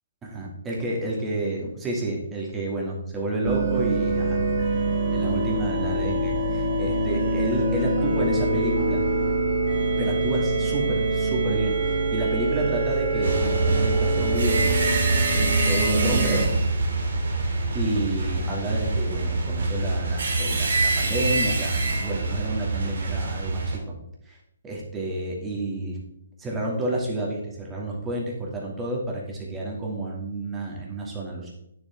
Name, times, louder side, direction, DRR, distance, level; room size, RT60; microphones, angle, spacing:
voice 1, 0.2-4.4 5.1-9.0 10.0-14.8 15.3-16.5 17.4-23.6 23.9-24.0 24.3-24.4 24.6-26.0 26.4-31.5, right 1 dB, 15° right, -2 dB, 2.5 m, -30 dB
sound 1, 3.4-16.5, right 2 dB, 35° right, 1.7 m, -24 dB
sound 2, 13.2-23.8, right 2 dB, 65° right, 2.6 m, -25 dB
9.4 x 7.6 x 3.6 m, 0.79 s
hypercardioid pair, 145°, 0 cm